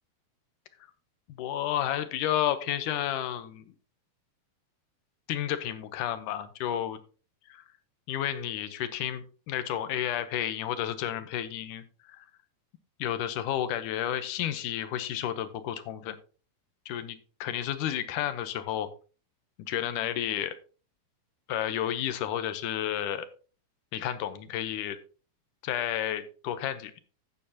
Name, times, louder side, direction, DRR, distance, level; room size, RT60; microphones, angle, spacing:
voice 1, 1.4-3.6 5.3-7.0 7.5-7.6 8.1-12.3 13.0-16.2 16.9-18.9 19.7-20.6 21.5-23.3 23.9-25.0 25.6-26.9, left 11 dB, 85° left, 12 dB, 2.4 m, -31 dB
12.0 x 8.8 x 2.8 m, 0.36 s
omnidirectional pair, 3.6 m